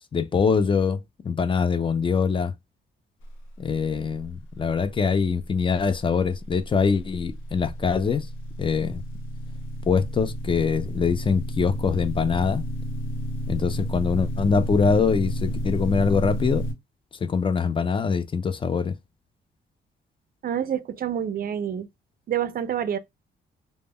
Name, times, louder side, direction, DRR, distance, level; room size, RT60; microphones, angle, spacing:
voice 1, 0.1-2.5 3.6-8.3 8.6-9.0 9.8-12.6 13.5-16.6 17.2-18.9, left 5 dB, 25° left, 0.3 m, -23 dB
sound 1, 5.9-16.7, equal, 70° left, 0.6 m, -31 dB
voice 2, 20.4-21.9 22.3-23.0, right 9 dB, 45° right, 0.4 m, -27 dB
2.0 x 2.0 x 3.4 m
cardioid pair, 80°, 21 cm